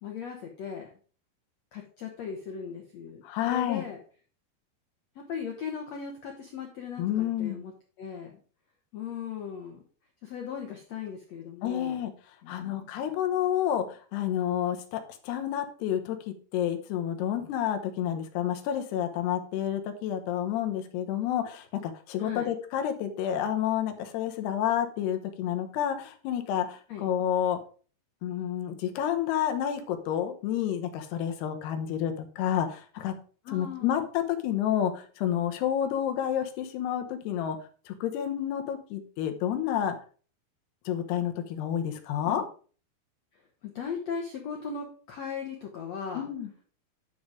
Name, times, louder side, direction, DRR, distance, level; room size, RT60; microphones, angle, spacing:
voice 1, 0.0-0.9 1.7-4.0 5.2-7.7 8.0-8.4 8.9-9.8 10.2-12.0 12.4-13.1 22.2-22.5 26.9-27.1 33.5-34.1 42.3-42.5 43.6-46.2, left 6 dB, 65° left, 2 dB, 1.7 m, -38 dB
voice 2, 3.2-3.8 7.0-7.6 11.6-12.1 12.5-27.6 28.2-33.1 33.5-37.6 37.9-40.0 40.9-42.4 46.1-46.5, left 10 dB, 85° left, 6 dB, 3.1 m, -29 dB
10.5 x 5.1 x 4.9 m, 0.39 s
omnidirectional pair, 4.6 m